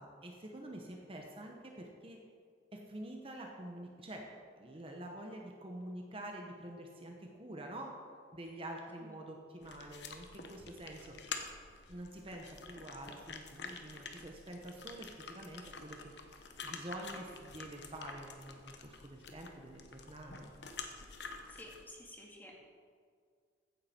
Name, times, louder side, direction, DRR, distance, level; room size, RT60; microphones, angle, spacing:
voice 1, 0.0-2.2 2.7-4.2 4.6-7.9 8.3-11.2 11.9-16.3 16.6-20.5, right 1 dB, 30° right, 1 dB, 1.1 m, -47 dB
sound 1, 9.6-21.8, left 5 dB, 75° left, 1.1 m, -48 dB
voice 2, 21.6-22.6, left 1 dB, 10° left, -2 dB, 2.0 m, -51 dB
15.0 x 9.7 x 4.5 m, 2.1 s
head